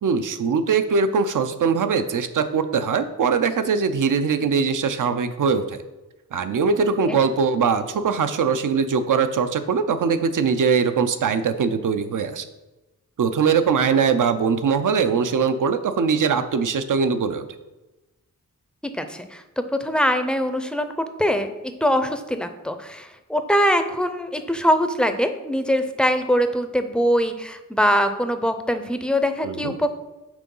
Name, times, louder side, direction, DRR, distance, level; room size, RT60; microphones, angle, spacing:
voice 1, 0.0-5.8 6.3-12.5 13.2-17.5 29.4-29.8, right 5 dB, 70° right, 10 dB, 0.6 m, -21 dB
voice 2, 18.9-19.4 19.8-20.9 21.2-29.9, equal, 5° left, 8 dB, 0.5 m, -22 dB
6.1 x 3.8 x 5.4 m, 1.1 s
wide cardioid pair, 100°, 33 cm